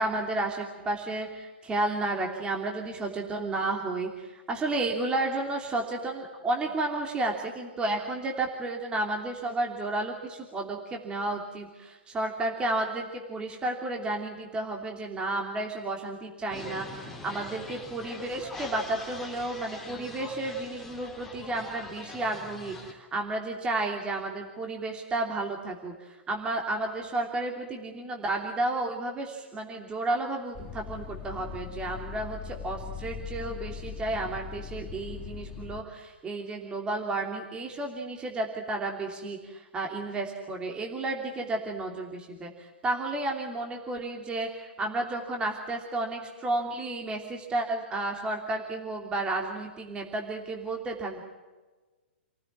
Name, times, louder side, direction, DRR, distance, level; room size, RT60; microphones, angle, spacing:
voice 1, 0.0-25.9 26.3-51.2, right 2 dB, 15° right, 2 dB, 3.0 m, -32 dB
sound 1, 16.5-22.9, left 3 dB, 5° left, 3.7 m, -43 dB
sound 2, 30.5-35.8, left 7 dB, 25° left, 2.1 m, -40 dB
28.0 x 15.5 x 8.8 m, 1.3 s
hypercardioid pair, 130°, 6 cm